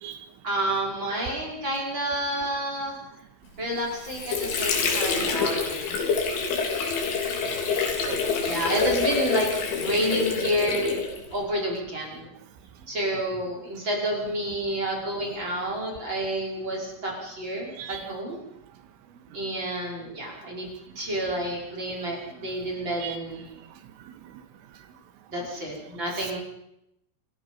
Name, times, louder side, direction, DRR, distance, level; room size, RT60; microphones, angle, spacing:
voice 1, 0.4-3.0 3.6-6.0 7.3-7.4 8.4-11.0 11.3-12.3 12.9-18.4 19.3-23.5 25.3-26.4, right 1 dB, 25° right, -2 dB, 5.8 m, -29 dB
Water / Sink (filling or washing), 3.7-11.4, left 5 dB, 70° left, 5.6 m, -27 dB
voice 2, 7.4-8.2 17.8-18.0 19.4-19.5 23.0-23.2 24.0-24.4 26.2-26.3, right 10 dB, 85° right, 8 dB, 3.9 m, -40 dB
28.0 x 19.5 x 5.6 m, 0.81 s
omnidirectional pair, 5.7 m